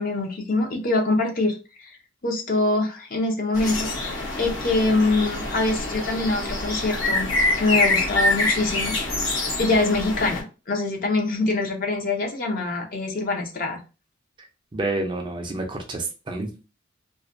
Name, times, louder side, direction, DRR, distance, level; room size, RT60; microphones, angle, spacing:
voice 1, 0.0-1.6 1.8-2.0 2.2-7.3 7.6-9.0 9.6-13.8, left 2 dB, 45° left, 2 dB, 0.6 m, -24 dB
sound 1, 3.5-10.4, left 2 dB, 80° left, 0.8 m, -25 dB
voice 2, 14.7-16.7, right 2 dB, 25° right, 3 dB, 0.4 m, -29 dB
2.4 x 2.1 x 2.4 m, 0.31 s
head